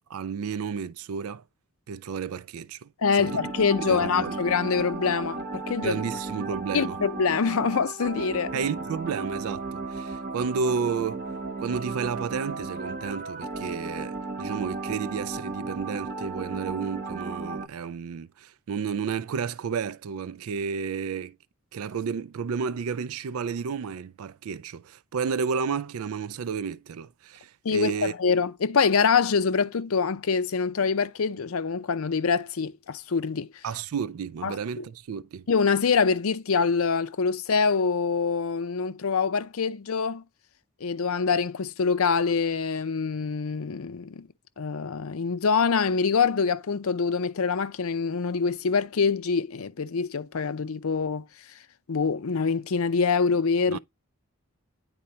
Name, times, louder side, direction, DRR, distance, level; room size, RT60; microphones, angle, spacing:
voice 1, 0.0-1.4 1.9-2.9 3.2-3.4 3.9-4.3 5.8-7.0 8.5-11.2 11.6-21.4 21.7-28.1 33.6-35.5 53.7-53.8, right 6 dB, 75° right, 0.4 m, -32 dB
voice 2, 3.0-6.0 6.4-6.5 6.7-8.5 27.6-33.5 34.4-34.8 35.5-40.2 40.8-44.3 44.6-51.3 51.9-53.8, left 5 dB, 70° left, 0.6 m, -25 dB
sound 1, 3.2-17.7, right 3 dB, 45° right, 0.9 m, -35 dB
9.8 x 4.3 x 2.8 m
head